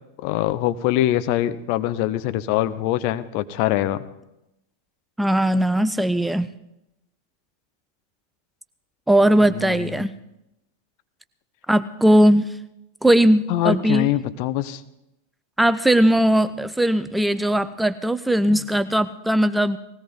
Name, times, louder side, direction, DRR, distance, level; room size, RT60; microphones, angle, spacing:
voice 1, 0.2-4.0 9.5-10.1 13.5-14.8 18.5-18.6, left 13 dB, 45° left, 12 dB, 0.7 m, -23 dB
voice 2, 5.2-6.5 9.1-10.1 11.7-12.5 13.0-14.1 15.6-19.8, right 1 dB, 5° right, 13 dB, 0.5 m, -19 dB
19.0 x 16.5 x 4.0 m, 0.88 s
figure-of-eight pair, 90°, 0 cm